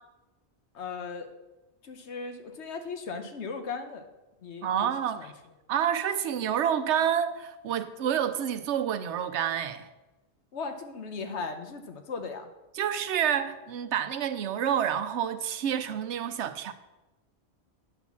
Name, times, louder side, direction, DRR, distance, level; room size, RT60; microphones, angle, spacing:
voice 1, 0.7-1.3 1.8-4.1 4.4-4.9 5.2-5.3 10.5-12.5, left 4 dB, 85° left, 1.2 m, -37 dB
voice 2, 4.6-5.3 5.7-9.9 12.7-16.7, right 9 dB, 85° right, 1.0 m, -28 dB
9.7 x 4.2 x 7.0 m
omnidirectional pair, 1.1 m